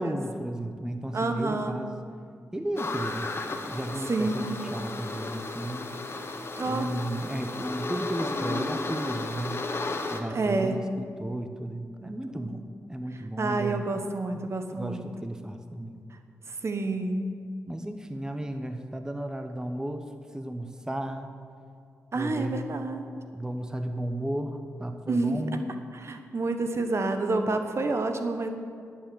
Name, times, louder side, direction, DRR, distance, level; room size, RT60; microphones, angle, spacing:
voice 1, 0.0-1.9 2.5-3.3 3.6-6.0 6.6-9.6 10.1-12.6 12.9-13.8 14.7-16.0 17.7-20.0 20.3-21.3 22.1-22.7 23.3-25.7, right 1 dB, 10° right, 6 dB, 1.0 m, -34 dB
voice 2, 1.1-1.8 4.1-4.7 6.6-6.9 10.3-10.8 12.0-12.5 13.4-15.1 16.5-17.3 22.1-23.1 25.1-25.5 25.9-28.5, right 3 dB, 50° right, 6 dB, 1.1 m, -29 dB
sound 1, 2.8-10.2, left 3 dB, 45° left, 1.3 m, -34 dB
11.0 x 7.2 x 7.8 m, 2.2 s
cardioid pair, 50°, 6 cm